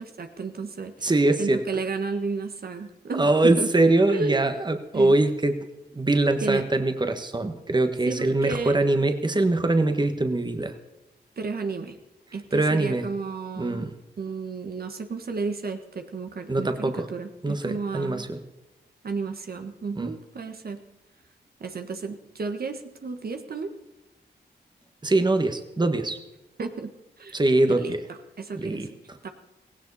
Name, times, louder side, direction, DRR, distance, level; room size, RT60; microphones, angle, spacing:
voice 1, 0.0-1.1 1.4-3.7 4.1-4.4 4.9-5.1 6.4-6.7 8.1-8.8 11.4-12.0 12.3-13.9 14.2-18.2 19.0-20.8 21.6-23.7 26.6-26.9 27.2-27.3 27.7-27.9 28.4-28.9 29.2-29.3, right 4 dB, 60° right, 6 dB, 1.4 m, -32 dB
voice 2, 1.0-1.6 3.1-5.6 5.9-10.7 12.5-13.1 13.6-13.9 16.5-17.1 17.4-18.4 20.0-20.1 25.0-26.2 27.3-28.0 28.5-28.9, right 2 dB, 25° right, 7 dB, 1.4 m, -23 dB
16.5 x 16.5 x 4.2 m, 0.99 s
cardioid pair, 60°, 18 cm